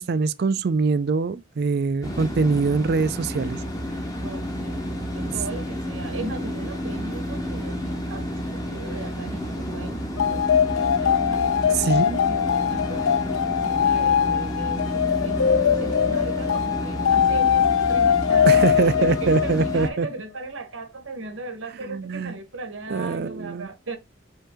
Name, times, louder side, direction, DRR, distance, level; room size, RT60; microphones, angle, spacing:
voice 1, 0.0-3.6 5.2-5.3 11.8-12.2 18.5-20.1 21.9-22.4 22.9-23.7, right 4 dB, 50° right, 0.4 m, -23 dB
sound 1, 2.0-19.9, equal, 20° left, 0.9 m, -31 dB
voice 2, 4.2-13.0 13.6-24.0, right 2 dB, 75° right, 1.1 m, -37 dB
sound 2, 10.2-19.9, left 8 dB, 90° left, 0.4 m, -22 dB
5.6 x 2.7 x 3.5 m
head